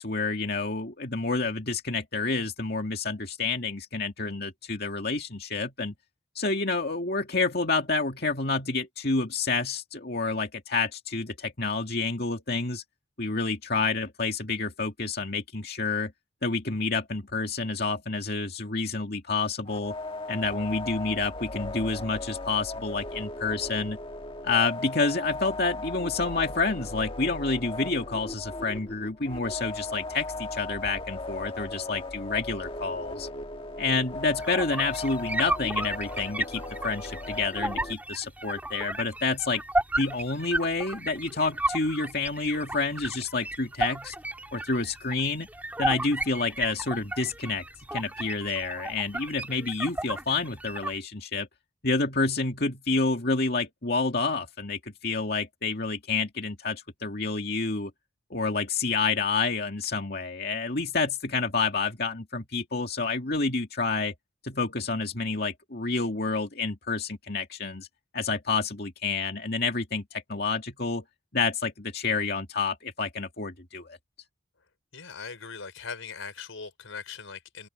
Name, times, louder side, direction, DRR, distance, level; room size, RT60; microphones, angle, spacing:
voice 1, 0.0-5.9 6.3-12.8 13.2-16.1 16.4-20.0 20.3-24.0 24.4-33.3 33.8-39.6 40.0-44.2 44.5-45.5 45.8-47.6 47.9-51.5 51.8-57.9 58.3-64.1 64.4-67.9 68.1-71.0 71.3-74.0, left 3 dB, 50° left, 2.4 m, -29 dB
sound 1, 19.6-37.9, left 2 dB, 25° left, 1.6 m, -37 dB
sound 2, 34.4-51.0, right 1 dB, 10° right, 3.4 m, -34 dB
voice 2, 74.9-77.7, left 5 dB, 80° left, 4.1 m, -40 dB
head